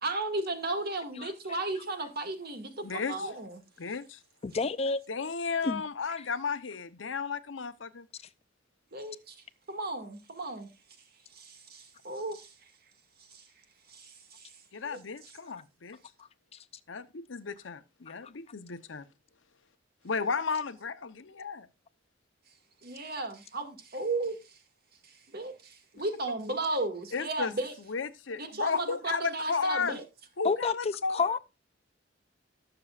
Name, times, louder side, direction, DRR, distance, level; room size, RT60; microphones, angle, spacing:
voice 1, 0.0-3.6 8.9-9.4 9.7-10.7 11.3-12.5 13.3-13.4 13.9-14.5 14.8-15.0 22.8-24.4 25.0-27.7 28.4-30.0, right 2 dB, 55° right, 2.1 m, -35 dB
voice 2, 2.8-3.3 3.8-4.2 5.1-8.0 14.7-16.0 16.9-19.1 20.0-21.7 27.1-27.5 27.9-30.0 30.4-31.4, left 5 dB, 80° left, 0.8 m, -34 dB
voice 3, 4.4-5.0 5.6-5.8 18.1-18.2 30.4-31.4, left 4 dB, 35° left, 0.4 m, -29 dB
19.5 x 6.9 x 2.4 m
head